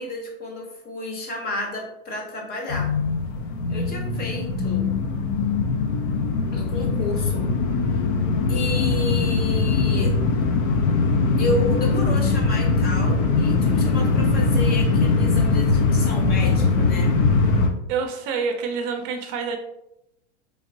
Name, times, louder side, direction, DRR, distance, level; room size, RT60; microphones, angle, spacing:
voice 1, 0.0-2.9 3.7-4.8 6.5-7.5 8.5-10.2 11.4-17.1, left 2 dB, 25° left, 1 dB, 0.9 m, -31 dB
sound 1, 2.7-17.7, left 4 dB, 45° left, 0.6 m, -21 dB
voice 2, 17.9-19.6, right 5 dB, 40° right, 4 dB, 0.6 m, -27 dB
3.5 x 3.2 x 2.7 m, 0.87 s
hypercardioid pair, 115°, 34 cm